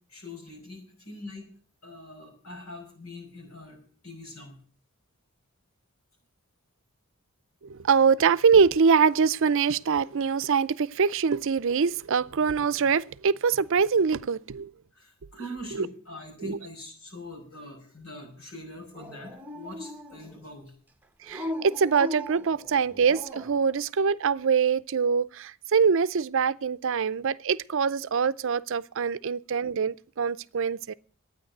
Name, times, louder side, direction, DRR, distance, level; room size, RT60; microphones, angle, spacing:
voice 1, 0.1-1.5 1.8-4.6 15.0-20.7, left 1 dB, 90° left, 5.6 m, -43 dB
voice 2, 7.7-14.7 15.7-15.9 16.4-16.6 21.3-30.9, right 6 dB, 65° right, 0.5 m, -24 dB
Dog, 18.9-20.4 21.3-23.6, left 1 dB, 10° right, 1.0 m, -38 dB
12.0 x 9.5 x 7.9 m
head